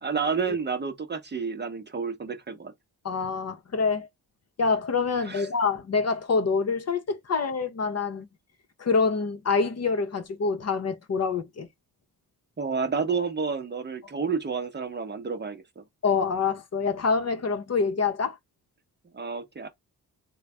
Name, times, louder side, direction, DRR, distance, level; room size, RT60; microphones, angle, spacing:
voice 1, 0.0-2.7 5.2-5.5 12.6-15.8 19.1-19.7, right 5 dB, 30° right, 0.8 m, -30 dB
voice 2, 3.0-4.1 4.6-8.3 8.8-11.7 16.0-18.4, left 4 dB, 45° left, 0.8 m, -26 dB
3.9 x 2.2 x 3.3 m
wide cardioid pair, 120°, 36 cm